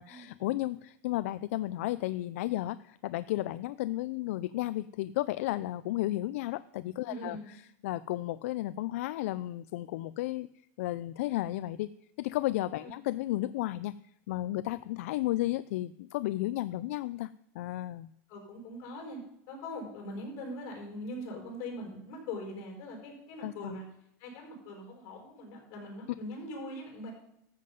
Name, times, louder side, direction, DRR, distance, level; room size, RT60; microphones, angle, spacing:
voice 1, 0.0-7.6 7.8-10.5 10.8-11.9 12.2-13.9 14.3-18.1 23.4-23.8, left 16 dB, 70° left, 15 dB, 0.4 m, -33 dB
voice 2, 7.0-7.5 12.8-12.9 18.3-19.2 19.5-23.8 24.2-27.1, left 1 dB, 45° left, 0 dB, 4.9 m, -41 dB
13.0 x 7.5 x 5.2 m, 0.77 s
supercardioid pair, 155°, 8 cm